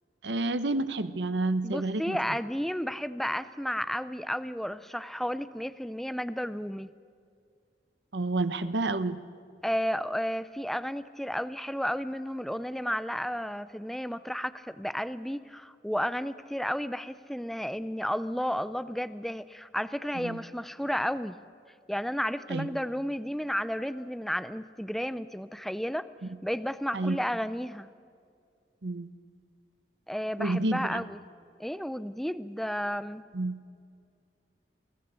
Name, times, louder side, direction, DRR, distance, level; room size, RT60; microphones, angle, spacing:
voice 1, 0.2-2.2 8.1-9.2 20.2-20.4 22.5-22.8 26.9-27.2 28.8-29.1 30.4-31.0 33.3-33.6, right 2 dB, 80° right, 12 dB, 1.0 m, -29 dB
voice 2, 1.6-6.9 9.6-21.4 21.9-26.1 26.4-27.9 30.1-31.2 31.6-33.3, equal, ahead, 14 dB, 0.5 m, -32 dB
23.5 x 14.5 x 8.3 m, 2.3 s
head